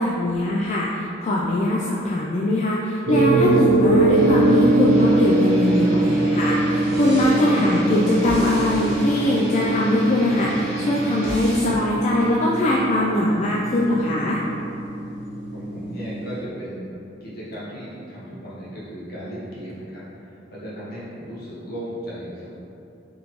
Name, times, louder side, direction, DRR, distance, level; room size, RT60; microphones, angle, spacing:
voice 1, 0.0-14.4, left 1 dB, 40° left, -5 dB, 0.3 m, -22 dB
sound 1, 3.1-16.4, right 2 dB, 30° right, 1.0 m, -22 dB
sound 2, 4.1-11.7, equal, 50° right, 1.3 m, -34 dB
voice 2, 15.5-16.9 17.2-22.5, equal, 55° left, -8 dB, 1.1 m, -36 dB
4.0 x 3.2 x 3.0 m, 2.7 s
head